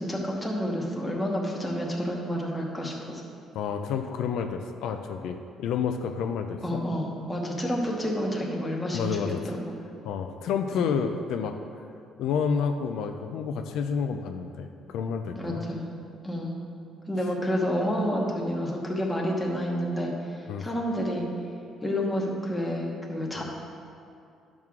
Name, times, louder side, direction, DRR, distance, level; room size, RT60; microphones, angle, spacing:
voice 1, 0.0-3.2 6.6-9.7 10.7-11.0 15.4-15.9 16.2-16.6 17.1-21.2 21.8-23.4, equal, 10° left, -2 dB, 1.1 m, -29 dB
voice 2, 3.5-6.8 8.9-9.4 10.0-11.6 12.2-15.6 20.5-20.7, left 6 dB, 75° left, 5 dB, 0.5 m, -29 dB
10.5 x 6.1 x 3.7 m, 2.5 s
cardioid pair, 155°, 0 cm